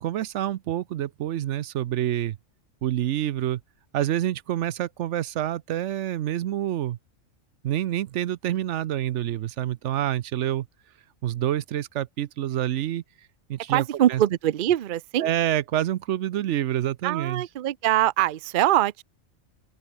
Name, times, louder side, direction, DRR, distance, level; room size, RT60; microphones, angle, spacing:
voice 1, 0.0-2.4 2.8-3.6 3.9-7.0 7.6-10.7 11.2-13.0 13.5-14.2 15.2-17.4, right 12 dB, 75° right, 0.9 m, -27 dB
voice 2, 13.7-15.3 17.0-19.0, right 12 dB, 55° right, 0.6 m, -23 dB
open air
omnidirectional pair, 1.3 m